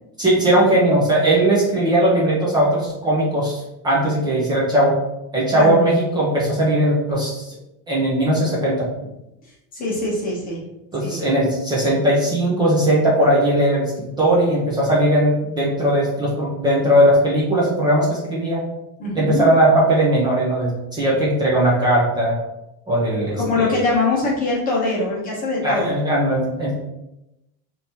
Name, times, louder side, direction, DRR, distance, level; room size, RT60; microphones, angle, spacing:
voice 1, 0.2-4.9 5.3-7.5 7.9-8.9 10.9-13.9 14.2-18.6 19.1-22.4 22.9-23.8 25.6-26.8, right 1 dB, 10° right, -6 dB, 0.3 m, -18 dB
voice 2, 9.7-10.6 11.0-11.2 19.0-19.4 23.4-25.9, left 3 dB, 20° left, -5 dB, 0.9 m, -22 dB
3.3 x 2.8 x 4.1 m, 0.90 s
cardioid pair, 170°, 40 cm